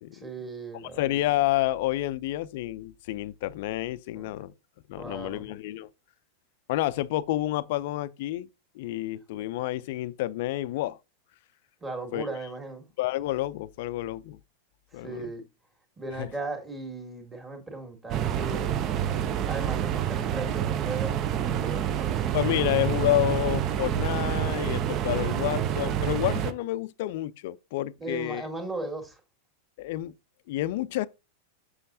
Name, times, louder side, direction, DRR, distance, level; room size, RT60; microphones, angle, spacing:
voice 1, 0.1-1.0 4.1-4.3 5.0-5.5 11.8-12.8 14.9-15.4 16.0-18.9 19.5-22.3 22.9-23.0 28.0-29.2, right 2 dB, 15° right, 1.9 m, -37 dB
voice 2, 1.0-4.5 4.9-5.9 6.7-8.5 8.7-11.0 12.1-12.3 13.0-14.4 14.9-15.3 16.2-16.3 22.3-28.4 29.8-30.1 30.5-31.1, left 15 dB, 50° left, 0.4 m, -29 dB
sound 1, 18.1-26.5, right 10 dB, 35° right, 0.6 m, -28 dB
7.3 x 6.4 x 2.6 m
figure-of-eight pair, 90°, 0 cm